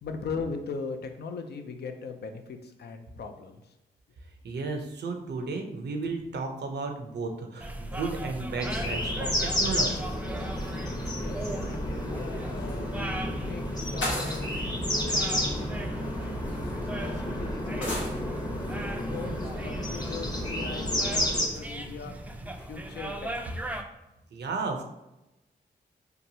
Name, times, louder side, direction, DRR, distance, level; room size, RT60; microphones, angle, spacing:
voice 1, 0.0-3.6 11.0-13.2 13.5-13.6 13.9-14.5 14.8-15.7 16.5-18.2 19.1-22.2 22.7-23.6, left 4 dB, 65° left, 6 dB, 0.4 m, -40 dB
voice 2, 4.4-10.1 15.1-15.3 24.3-24.8, right 3 dB, 65° right, 3 dB, 0.5 m, -33 dB
sound 1, 7.6-23.8, right 1 dB, 10° right, 0.3 m, -39 dB
sound 2, 8.6-21.5, left 1 dB, 20° left, 0.7 m, -31 dB
sound 3, 12.6-12.7 14.0-14.6 15.8-15.9 16.6-16.7 17.8-18.1, left 1 dB, 85° left, 1.0 m, -33 dB
2.9 x 2.2 x 2.7 m, 0.92 s
cardioid pair, 45°, 19 cm